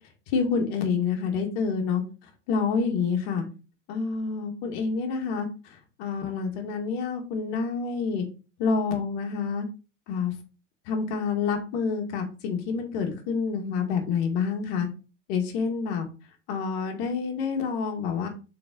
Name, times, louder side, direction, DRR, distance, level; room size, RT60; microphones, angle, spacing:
voice 1, 0.3-2.0 2.5-3.5 3.9-5.5 6.0-8.3 8.6-9.7 10.1-10.3 10.9-14.9 15.3-16.1 16.5-18.3, left 5 dB, 50° left, 3 dB, 2.2 m, -27 dB
6.9 x 4.7 x 4.0 m, 0.33 s
figure-of-eight pair, 90°, 38 cm